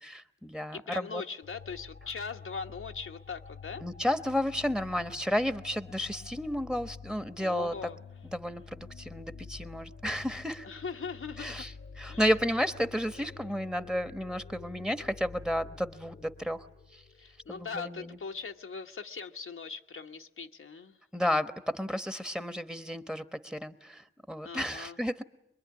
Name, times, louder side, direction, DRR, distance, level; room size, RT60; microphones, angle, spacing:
voice 1, 0.0-1.2 3.8-7.8 8.3-10.7 11.4-17.0 17.5-18.2 21.1-25.2, equal, 5° right, 11 dB, 1.1 m, -32 dB
voice 2, 0.7-3.8 7.4-8.0 10.6-11.7 12.1-12.2 17.2-21.0 24.4-25.0, left 5 dB, 85° left, 4 dB, 1.1 m, -40 dB
sound 1, 1.4-17.8, left 5 dB, 60° left, 0.9 m, -49 dB
24.0 x 22.5 x 9.5 m, 0.83 s
wide cardioid pair, 70°, 21 cm